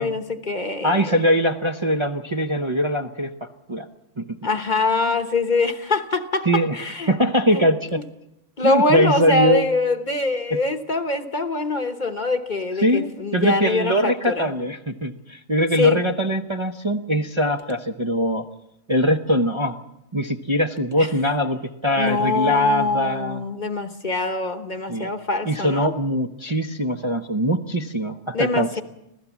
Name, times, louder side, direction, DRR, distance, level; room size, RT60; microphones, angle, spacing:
voice 1, 0.0-1.2 4.4-7.1 7.5-7.6 8.6-14.5 15.7-16.0 21.0-21.1 22.0-25.9 28.3-28.8, left 3 dB, 40° left, 8 dB, 1.2 m, -23 dB
voice 2, 0.8-3.9 4.2-4.3 6.4-8.0 8.6-9.6 10.5-10.6 12.8-18.5 18.9-19.8 20.1-23.4 24.9-25.1 25.4-28.8, equal, 25° right, 1 dB, 0.7 m, -22 dB
26.0 x 16.0 x 7.2 m, 0.91 s
omnidirectional pair, 1.3 m